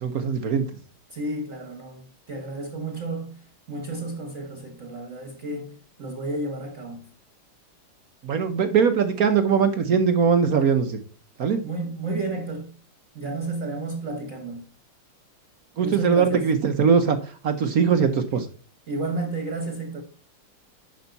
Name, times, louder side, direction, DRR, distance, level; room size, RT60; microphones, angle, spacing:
voice 1, 0.0-0.6 8.2-11.0 11.4-11.6 15.8-17.2 17.4-18.5, right 6 dB, 60° right, 1.0 m, -21 dB
voice 2, 1.1-3.4 3.7-7.1 11.6-12.7 13.1-14.7 15.8-16.5 18.9-20.0, right 2 dB, 40° right, 1.4 m, -32 dB
11.5 x 5.3 x 4.0 m
omnidirectional pair, 2.4 m